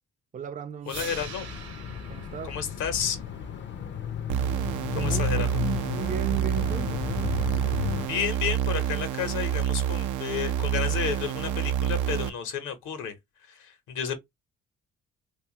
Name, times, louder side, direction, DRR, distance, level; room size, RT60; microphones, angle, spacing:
voice 1, 0.3-1.1 2.1-2.6 4.9-7.0, right 6 dB, 30° right, 0.4 m, -35 dB
sound 1, 0.8-6.9, right 7 dB, 55° right, 0.8 m, -46 dB
voice 2, 0.9-1.5 2.4-3.2 5.0-5.5 8.0-13.2 13.5-14.2, left 7 dB, 80° left, 0.8 m, -31 dB
sound 2, 0.9-8.1, left 9 dB, 40° left, 0.4 m, -34 dB
sound 3, 4.3-12.3, right 10 dB, 85° right, 0.5 m, -28 dB
2.9 x 2.3 x 2.7 m
cardioid pair, 90°, 30 cm